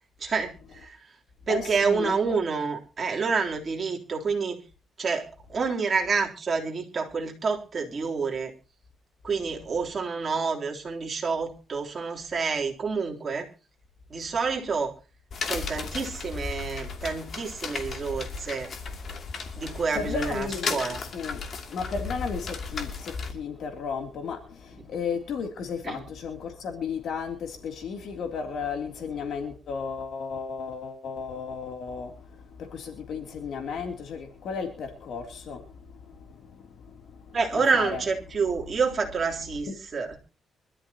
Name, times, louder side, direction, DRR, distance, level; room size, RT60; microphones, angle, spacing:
voice 1, 0.2-1.0 1.5-4.6 5.0-8.5 9.2-13.5 14.1-14.9 15.4-18.7 19.6-21.1 24.8-24.9 25.8-26.0 37.3-40.2, right 5 dB, 35° right, 0 dB, 3.4 m, -28 dB
voice 2, 1.5-2.3 19.9-20.8 21.1-21.4 21.7-38.0 39.7-39.8, left 5 dB, 65° left, 4 dB, 2.9 m, -34 dB
sound 1, 15.3-23.3, left 5 dB, 45° left, 2.6 m, -35 dB
24.5 x 13.0 x 2.9 m, 0.33 s
cardioid pair, 140°, 0 cm